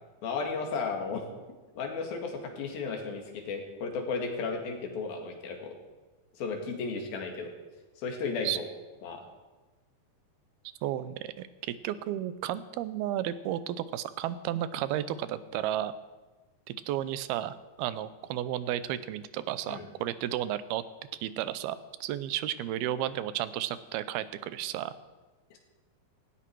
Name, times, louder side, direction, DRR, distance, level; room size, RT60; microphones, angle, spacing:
voice 1, 0.2-1.3 1.8-5.7 6.4-7.5 8.0-8.6 9.0-9.2 19.7-19.8 25.5-25.6, left 4 dB, 70° left, 2 dB, 3.8 m, -34 dB
voice 2, 10.8-15.9 16.7-20.8 21.2-24.9, right 12 dB, 85° right, 14 dB, 2.7 m, -33 dB
18.0 x 17.5 x 4.7 m, 1.2 s
omnidirectional pair, 4.4 m